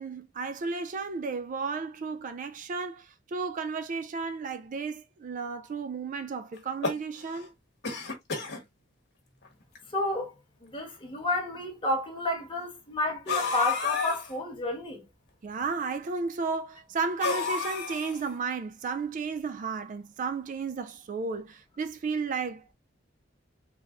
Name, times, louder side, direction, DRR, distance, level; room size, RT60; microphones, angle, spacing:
voice 1, 0.0-7.5 15.4-22.7, right 4 dB, 40° right, 0.3 m, -33 dB
sound 1, 6.6-7.5 7.8-8.6 9.4-9.5 9.8-9.9 10.8-10.9 13.3-14.3 17.2-18.3, left 4 dB, 60° left, 1.2 m, -31 dB
voice 2, 9.9-10.3 10.6-15.0, left 1 dB, 25° left, 1.5 m, -31 dB
4.0 x 3.3 x 2.4 m
head